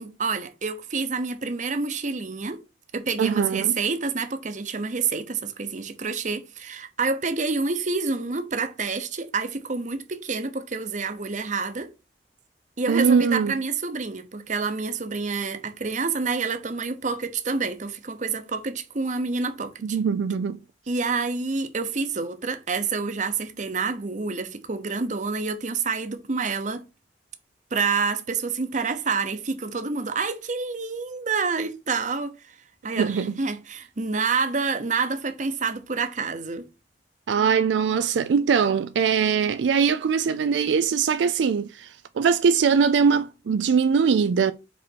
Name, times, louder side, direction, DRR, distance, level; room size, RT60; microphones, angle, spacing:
voice 1, 0.0-2.6 2.9-11.9 12.8-20.0 20.9-26.8 27.7-32.6 32.8-36.7, right 4 dB, 45° right, 0.8 m, -28 dB
voice 2, 3.2-3.8 12.9-13.5 19.8-20.6 33.0-33.3 37.3-44.5, right 6 dB, 85° right, 0.4 m, -22 dB
5.2 x 4.3 x 4.5 m
head